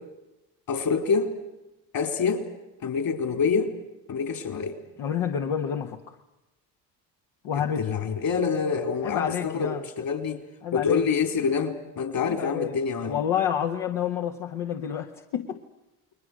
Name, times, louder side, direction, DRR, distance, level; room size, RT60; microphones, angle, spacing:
voice 1, 0.7-1.3 1.9-2.5 2.8-3.7 4.1-4.8 7.5-10.4 10.7-13.2, left 5 dB, 55° left, 7 dB, 4.5 m, -26 dB
voice 2, 5.0-6.2 7.4-7.9 9.0-9.8 10.6-11.1 12.3-12.8 13.0-15.6, left 9 dB, 75° left, 3 dB, 1.8 m, -29 dB
30.0 x 22.0 x 6.4 m, 0.98 s
hypercardioid pair, 70°, 41 cm